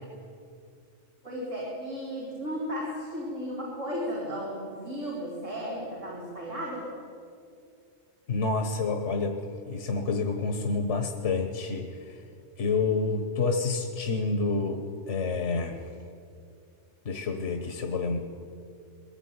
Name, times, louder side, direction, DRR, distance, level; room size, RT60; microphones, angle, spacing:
voice 1, 1.2-6.8, equal, 90° right, -6 dB, 4.6 m, -34 dB
voice 2, 8.3-9.4 9.7-12.2 12.6-15.8 17.0-18.2, left 4 dB, 75° left, 5 dB, 1.6 m, -28 dB
21.5 x 16.5 x 9.6 m, 2.4 s
omnidirectional pair, 1.2 m